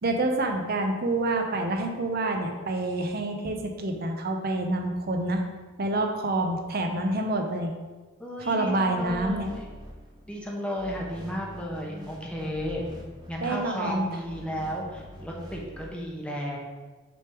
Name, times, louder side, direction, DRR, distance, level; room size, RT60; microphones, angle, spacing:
voice 1, 0.0-5.4 5.8-7.7 8.4-9.5 13.4-14.1, right 2 dB, 50° right, 4 dB, 0.7 m, -27 dB
voice 2, 8.2-9.7 10.3-12.8 13.3-16.6, equal, 5° left, -2 dB, 0.9 m, -34 dB
sound 1, 9.0-10.4 10.8-13.6 14.2-15.9, equal, 20° right, 0.9 m, -44 dB
6.2 x 3.5 x 4.6 m, 1.3 s
head